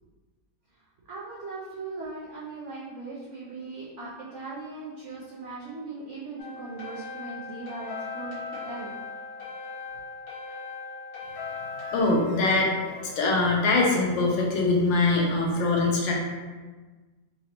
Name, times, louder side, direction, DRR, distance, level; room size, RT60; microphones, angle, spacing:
voice 1, 1.1-8.9, right 3 dB, 90° right, -7 dB, 0.6 m, -39 dB
sound 1, 6.4-14.2, left 3 dB, 60° left, 1.9 m, -39 dB
voice 2, 11.9-12.7 13.2-16.1, left 3 dB, 80° left, -2 dB, 1.4 m, -23 dB
4.0 x 2.9 x 2.9 m, 1.3 s
omnidirectional pair, 2.0 m